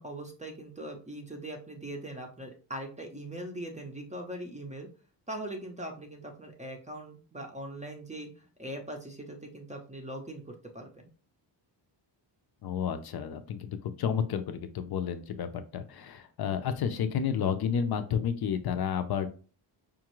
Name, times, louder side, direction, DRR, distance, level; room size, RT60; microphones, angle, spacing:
voice 1, 0.0-4.9 5.3-11.1, right 1 dB, 15° right, 3 dB, 0.5 m, -41 dB
voice 2, 12.6-19.3, left 7 dB, 55° left, 9 dB, 0.5 m, -31 dB
5.1 x 2.4 x 2.9 m, 0.38 s
wide cardioid pair, 170°, 45 cm